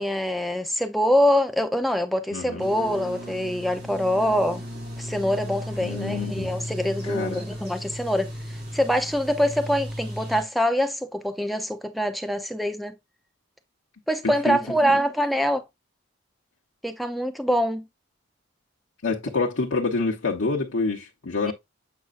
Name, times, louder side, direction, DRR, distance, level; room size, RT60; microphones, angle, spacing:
voice 1, 0.0-4.6 5.0-12.9 14.1-15.6 16.8-17.9 21.5-21.6, equal, ahead, 0.5 m, -24 dB
voice 2, 2.3-2.7 5.8-6.5 7.0-7.4 14.2-14.6 19.0-21.5, left 3 dB, 85° left, 1.0 m, -27 dB
sound 1, 2.6-10.4, equal, 50° right, 3.0 m, -35 dB
8.0 x 5.0 x 2.5 m
head